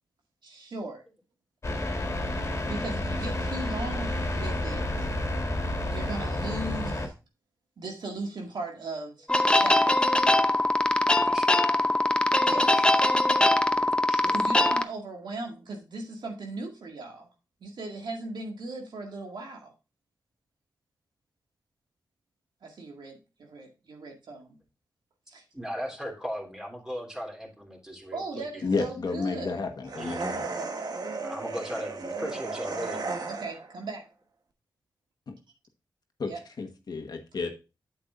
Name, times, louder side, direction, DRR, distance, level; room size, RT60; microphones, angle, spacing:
voice 1, 0.4-1.0 2.6-5.1 5.9-7.1 7.8-10.2 12.4-12.7 14.2-17.3 17.6-19.7 22.6-24.6 25.3-25.4 28.1-29.6 33.4-34.0 36.3-36.4, right 2 dB, 75° right, 2.0 m, -38 dB
sound 1, 1.6-7.1, left 1 dB, 40° left, 2.1 m, -30 dB
sound 2, 9.3-14.8, left 1 dB, 10° left, 0.7 m, -22 dB
voice 2, 11.2-11.9 12.7-13.1 14.1-14.4 25.5-28.7 30.0-30.2 31.2-33.2, equal, 5° right, 3.1 m, -38 dB
voice 3, 28.6-30.4 35.3-35.4 36.2-37.5, left 4 dB, 60° left, 1.3 m, -31 dB
sound 3, 29.9-33.7, right 3 dB, 55° right, 1.1 m, -34 dB
8.5 x 7.5 x 2.5 m
cardioid pair, 60°, 8 cm